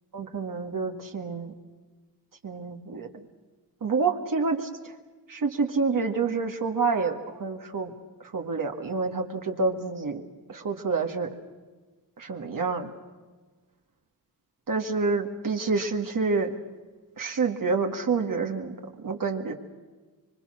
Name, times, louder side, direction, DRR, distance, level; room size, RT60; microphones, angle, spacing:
voice 1, 0.1-1.5 2.4-3.1 3.8-4.7 5.3-7.9 8.3-10.2 10.5-11.3 12.2-12.9 14.7-16.5 17.2-18.8 19.0-19.5, right 4 dB, 55° right, 3 dB, 2.0 m, -28 dB
26.0 x 23.5 x 6.5 m, 1.3 s
cardioid pair, 85°, 38 cm